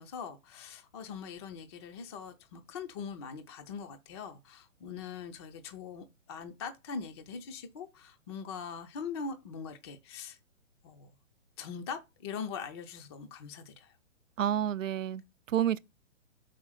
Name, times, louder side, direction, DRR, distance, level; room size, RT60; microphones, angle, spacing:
voice 1, 0.0-10.4 10.8-11.1 11.6-14.0, left 6 dB, 20° left, 0.5 m, -42 dB
voice 2, 14.4-15.8, right 10 dB, 75° right, 0.7 m, -30 dB
5.9 x 5.0 x 5.6 m
hypercardioid pair, 140°, 39 cm